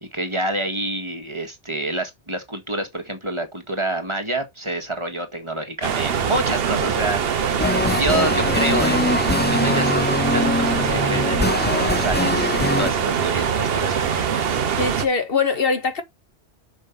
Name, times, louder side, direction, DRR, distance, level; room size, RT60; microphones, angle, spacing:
voice 1, 0.0-9.2 9.5-14.1, right 1 dB, 25° right, 1.8 m, -28 dB
sound 1, 5.8-15.1, right 7 dB, 60° right, 1.0 m, -23 dB
sound 2, 7.6-12.9, left 2 dB, 15° left, 0.4 m, -23 dB
voice 2, 14.8-16.0, left 4 dB, 60° left, 1.3 m, -22 dB
6.3 x 5.5 x 5.5 m
omnidirectional pair, 1.1 m